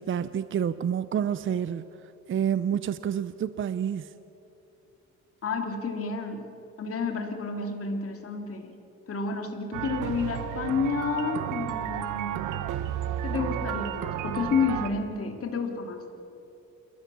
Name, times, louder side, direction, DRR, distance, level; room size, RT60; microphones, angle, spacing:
voice 1, 0.0-1.9 2.3-4.1, right 8 dB, 40° right, 14 dB, 0.6 m, -28 dB
voice 2, 5.4-6.4 6.8-8.7 9.1-12.6 13.2-16.1, left 5 dB, 50° left, 4 dB, 2.9 m, -30 dB
sound 1, 9.7-14.9, right 10 dB, 85° right, 1.2 m, -32 dB
29.0 x 14.0 x 7.0 m, 2.9 s
cardioid pair, 90°, 30 cm